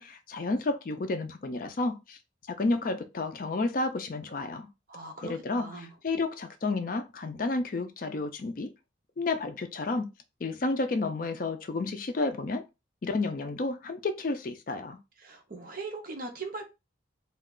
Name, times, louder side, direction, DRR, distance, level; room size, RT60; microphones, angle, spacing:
voice 1, 0.0-2.2 2.6-4.7 5.2-5.7 6.0-8.7 9.2-10.1 10.4-12.6 13.0-15.0, left 3 dB, 45° left, 0.4 m, -31 dB
voice 2, 4.9-5.9 15.2-16.6, right 3 dB, 45° right, 0.6 m, -40 dB
2.4 x 2.3 x 3.6 m
head